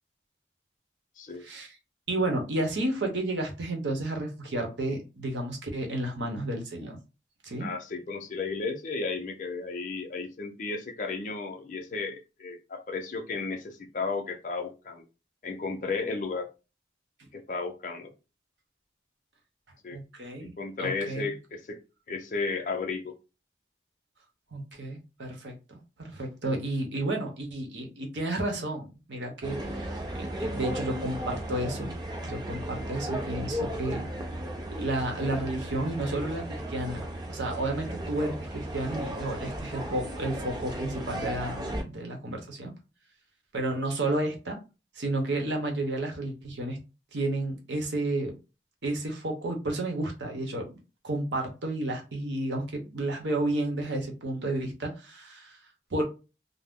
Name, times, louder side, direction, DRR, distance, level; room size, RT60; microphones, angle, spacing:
voice 1, 1.4-1.7 2.1-7.0 7.4-7.7 19.9-20.5 20.8-21.3 24.5-25.6 26.0-31.9 32.2-34.0 34.7-42.7 43.5-44.6 45.0-46.8 47.1-48.4 48.8-50.8 51.0-55.5 55.9-56.0, right 1 dB, 90° right, 0.8 m, -31 dB
voice 2, 7.6-15.0 15.4-16.5 17.3-18.1 19.8-20.0 20.4-21.8 22.1-23.1, left 4 dB, 45° left, 0.5 m, -34 dB
sound 1, 29.4-41.8, right 1 dB, 25° right, 0.5 m, -35 dB
2.5 x 2.0 x 3.5 m
head